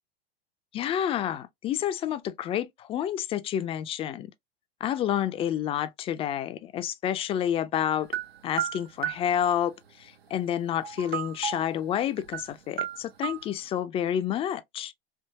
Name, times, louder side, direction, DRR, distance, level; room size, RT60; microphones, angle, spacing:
voice 1, 0.7-4.3 4.8-8.2 8.4-14.9, left 10 dB, 20° left, 0.3 m, -29 dB
sound 1, 8.1-9.3 10.8-11.7 12.2-12.5 12.8-13.4, right 9 dB, 85° right, 0.6 m, -32 dB
3.4 x 2.7 x 2.7 m
figure-of-eight pair, 90°, 30 cm